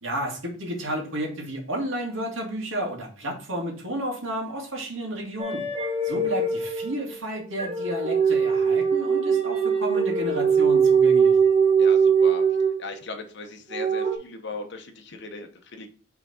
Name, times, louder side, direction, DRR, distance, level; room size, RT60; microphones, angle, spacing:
voice 1, 0.0-5.6 6.0-11.4, right 1 dB, 75° right, -1 dB, 2.1 m, -32 dB
sound 1, 5.4-13.0 13.7-14.2, right 6 dB, 30° right, 1.2 m, -21 dB
voice 2, 11.8-12.4 12.8-15.9, left 3 dB, 60° left, 5 dB, 1.1 m, -38 dB
6.0 x 3.8 x 4.3 m, 0.41 s
head